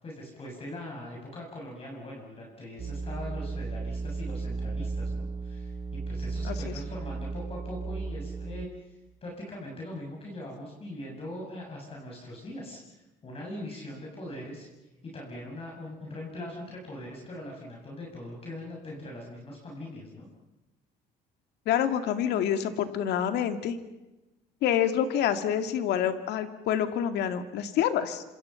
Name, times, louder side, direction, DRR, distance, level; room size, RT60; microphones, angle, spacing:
voice 1, 0.0-14.7 15.0-20.3, left 1 dB, 35° left, -2 dB, 7.6 m, -41 dB
sound 1, 2.8-8.7, right 3 dB, 30° right, 1.7 m, -34 dB
voice 2, 21.7-23.8 24.6-28.2, left 9 dB, 80° left, 8 dB, 2.3 m, -27 dB
27.5 x 27.0 x 5.9 m, 1.0 s
cardioid pair, 110°, 17 cm